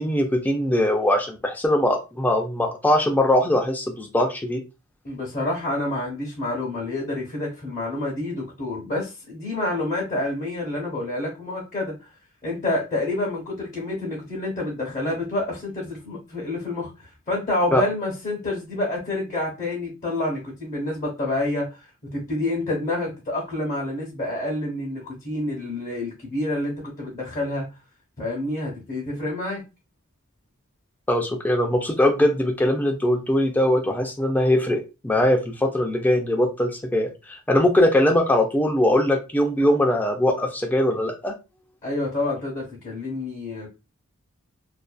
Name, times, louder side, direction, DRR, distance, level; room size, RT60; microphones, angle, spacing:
voice 1, 0.0-4.6 17.7-17.8 31.1-41.3, left 1 dB, 10° left, 3 dB, 0.3 m, -21 dB
voice 2, 5.0-11.9 12.4-21.8 22.1-27.7 28.2-29.6 41.8-43.7, left 2 dB, 35° left, -5 dB, 0.8 m, -28 dB
2.5 x 2.2 x 2.2 m, 0.28 s
head